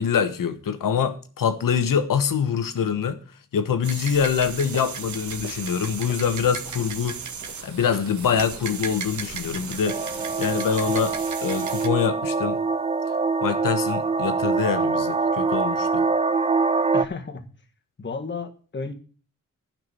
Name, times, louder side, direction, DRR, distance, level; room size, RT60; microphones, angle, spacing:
voice 1, 0.0-3.2 3.5-7.2 7.6-10.0 10.4-11.2 11.4-12.6 13.4-16.0, left 7 dB, 90° left, 1.2 m, -24 dB
sound 1, 3.8-11.9, right 6 dB, 65° right, 1.1 m, -35 dB
sound 2, 4.1-11.3, right 3 dB, 45° right, 1.6 m, -45 dB
sound 3, 9.8-17.0, right 4 dB, 20° right, 0.4 m, -24 dB
voice 2, 16.9-17.5 18.0-18.9, left 4 dB, 35° left, 1.5 m, -33 dB
11.0 x 5.9 x 6.8 m
wide cardioid pair, 115°, 32 cm